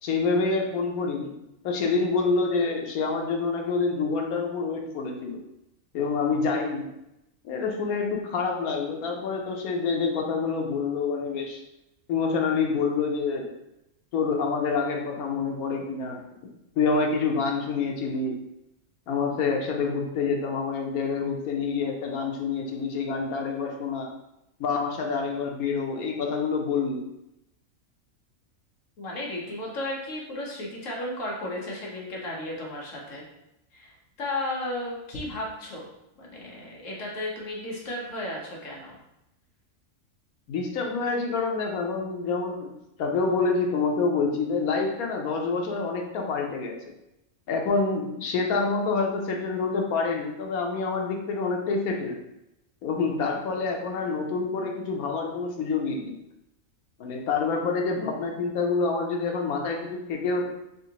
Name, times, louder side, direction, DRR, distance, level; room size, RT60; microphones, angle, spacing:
voice 1, 0.0-1.3 1.6-5.4 5.9-6.9 7.4-11.6 12.1-13.5 14.1-16.2 16.8-18.4 19.1-24.1 24.6-27.0 40.5-42.7 43.0-46.8 47.5-52.2 52.8-56.1 57.0-60.5, left 4 dB, 90° left, 1 dB, 1.2 m, -27 dB
voice 2, 29.0-33.2 33.7-33.9 34.2-35.9 36.2-39.0, left 1 dB, 65° left, -2 dB, 1.3 m, -34 dB
3.9 x 3.5 x 2.8 m, 0.87 s
omnidirectional pair, 1.5 m